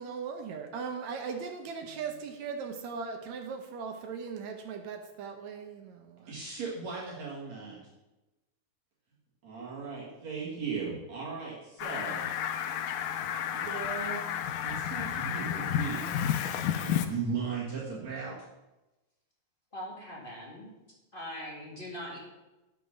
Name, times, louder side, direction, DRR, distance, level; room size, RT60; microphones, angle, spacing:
voice 1, 0.0-6.3, right 5 dB, 70° right, 5 dB, 1.8 m, -39 dB
voice 2, 6.3-7.8 9.4-12.3 13.5-14.2 14.6-16.1 16.8-18.4, right 5 dB, 55° right, -5 dB, 2.9 m, -37 dB
Fowl, 11.8-17.1, left 9 dB, 80° left, 2.3 m, -31 dB
voice 3, 19.7-20.7 21.1-22.2, equal, 25° left, -3 dB, 1.3 m, -41 dB
9.4 x 6.4 x 6.4 m, 1.0 s
omnidirectional pair, 4.0 m